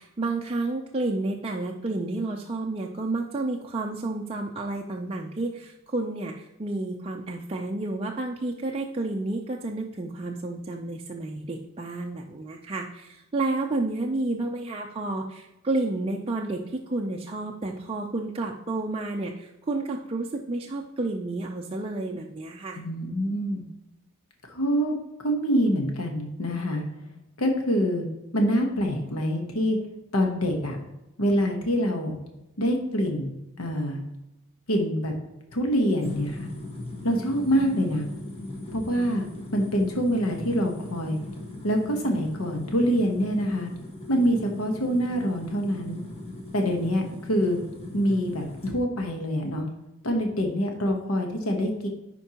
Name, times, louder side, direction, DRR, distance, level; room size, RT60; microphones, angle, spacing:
voice 1, 0.0-22.8, right 2 dB, 25° right, 0 dB, 0.5 m, -30 dB
voice 2, 22.8-23.6 24.5-25.0 25.2-26.8 27.4-28.1 28.3-29.8 30.1-30.8 31.2-32.2 32.6-33.3 33.6-34.0 34.7-35.1 35.5-36.5 37.0-38.0 38.7-39.2 39.5-41.2 41.6-43.7 44.1-46.0 46.5-47.6 47.9-49.7 50.0-51.9, equal, 80° left, 2 dB, 1.1 m, -25 dB
sound 1, 36.0-48.8, left 2 dB, 30° left, 1.4 m, -38 dB
10.5 x 4.5 x 2.9 m, 0.94 s
head